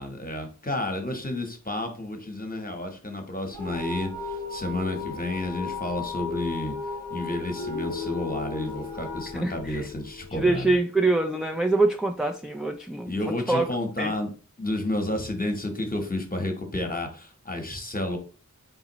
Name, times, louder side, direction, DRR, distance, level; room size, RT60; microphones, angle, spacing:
voice 1, 0.0-6.8 7.1-10.8 13.0-14.3 14.6-18.2, left 1 dB, 25° left, 4 dB, 1.0 m, -31 dB
sound 1, 3.5-10.4, left 3 dB, 80° right, 2.3 m, -36 dB
Guitar, 7.6-11.6, left 6 dB, 60° left, 0.6 m, -38 dB
voice 2, 9.3-9.9 10.3-13.2 13.5-13.7 14.0-14.1, right 2 dB, ahead, 3 dB, 0.4 m, -24 dB
4.0 x 3.7 x 3.0 m, 0.36 s
wide cardioid pair, 50°, 35 cm